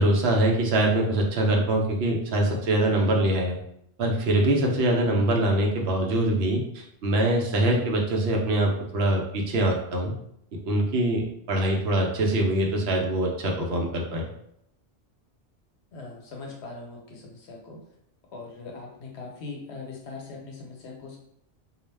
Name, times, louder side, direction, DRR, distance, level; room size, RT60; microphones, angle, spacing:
voice 1, 0.0-3.6 4.0-10.1 10.5-14.3, right 1 dB, 70° right, 0 dB, 0.8 m, -24 dB
voice 2, 15.9-17.8 18.3-21.2, left 3 dB, 75° left, 0 dB, 1.0 m, -40 dB
2.3 x 2.0 x 3.2 m, 0.75 s
omnidirectional pair, 1.1 m